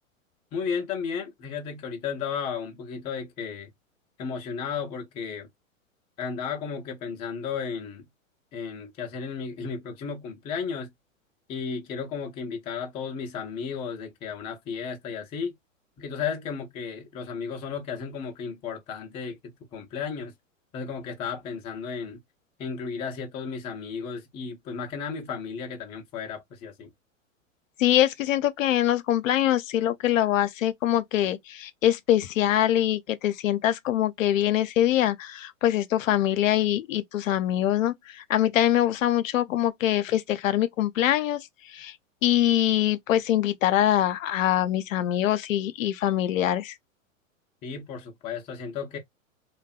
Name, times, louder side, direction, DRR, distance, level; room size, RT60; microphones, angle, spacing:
voice 1, 0.5-3.7 4.2-5.5 6.2-8.1 8.5-10.9 11.5-15.5 16.0-20.3 20.7-22.2 22.6-26.9 47.6-49.0, left 6 dB, 15° left, 0.3 m, -34 dB
voice 2, 27.8-41.4 41.7-41.9 42.2-46.7, left 12 dB, 75° left, 0.5 m, -24 dB
2.6 x 2.1 x 2.3 m
hypercardioid pair, 105°, 40 cm